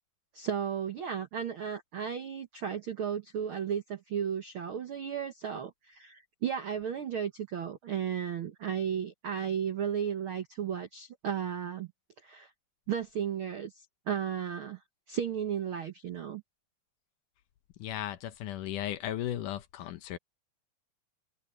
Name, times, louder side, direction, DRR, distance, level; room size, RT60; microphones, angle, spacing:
voice 1, 0.3-11.9 12.2-12.5 12.9-14.8 15.1-16.4, right 8 dB, 70° right, 1.2 m, -34 dB
voice 2, 17.8-20.2, left 12 dB, 70° left, 2.3 m, -36 dB
omnidirectional pair, 4.0 m